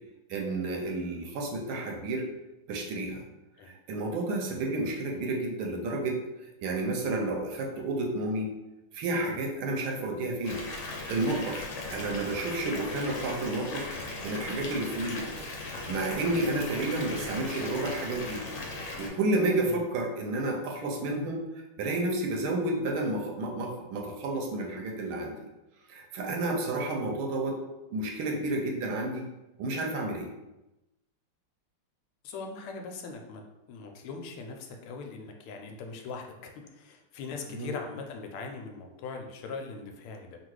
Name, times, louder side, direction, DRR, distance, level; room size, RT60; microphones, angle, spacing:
voice 1, 0.3-2.3 2.7-3.2 3.6-6.2 6.6-8.6 8.9-10.6 11.1-13.9 14.2-15.3 15.9-18.4 19.0-25.5 25.9-27.6 27.9-29.3 29.6-30.3 37.5-37.7, right 2 dB, 75° right, 1 dB, 1.4 m, -31 dB
Water tap faucet / Bathtub (filling or washing) / Fill (with liquid), 10.4-19.1, left 2 dB, 70° left, 1.4 m, -38 dB
voice 2, 32.2-33.4 33.7-40.4, left 4 dB, 85° left, 3 dB, 1.5 m, -40 dB
3.8 x 2.4 x 4.6 m, 0.98 s
omnidirectional pair, 2.4 m